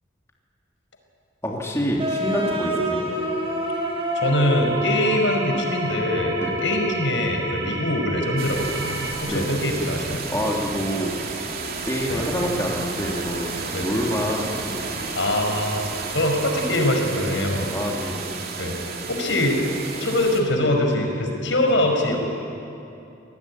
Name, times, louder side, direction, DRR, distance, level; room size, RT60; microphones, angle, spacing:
voice 1, 1.4-3.0 6.4-6.5 9.3-9.6 10.3-11.1 11.9-15.1 17.7-18.3, equal, 15° left, -2 dB, 3.1 m, -27 dB
sound 1, 2.0-7.5, equal, 30° right, 3.7 m, -29 dB
sound 2, 2.8-9.1, right 2 dB, 75° right, 4.3 m, -33 dB
voice 2, 4.2-10.2 12.1-12.3 13.7-13.9 15.2-17.7 18.6-18.7 19.1-19.6 20.0-22.2, left 1 dB, 85° left, 3 dB, 5.2 m, -23 dB
sound 3, 8.4-20.4, right 4 dB, 55° right, 3.0 m, -32 dB
27.0 x 18.5 x 9.9 m, 2.7 s
head